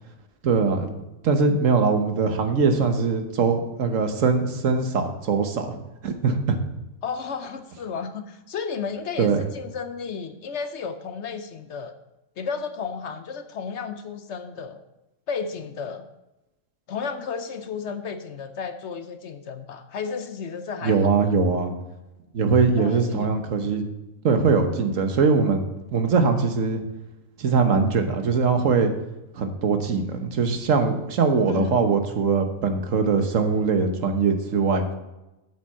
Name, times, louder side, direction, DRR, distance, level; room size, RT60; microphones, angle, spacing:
voice 1, 0.4-0.9 1.2-6.6 9.2-9.4 20.8-21.7 22.3-23.9 24.2-25.6 25.9-26.8 27.4-28.9 29.3-34.8, right 4 dB, 70° right, 6 dB, 1.4 m, -22 dB
voice 2, 7.0-11.9 12.4-14.8 15.3-16.1 16.9-21.1 22.8-23.3 31.5-31.8, left 6 dB, 60° left, 9 dB, 1.0 m, -33 dB
8.0 x 7.7 x 5.5 m, 0.98 s
omnidirectional pair, 1.4 m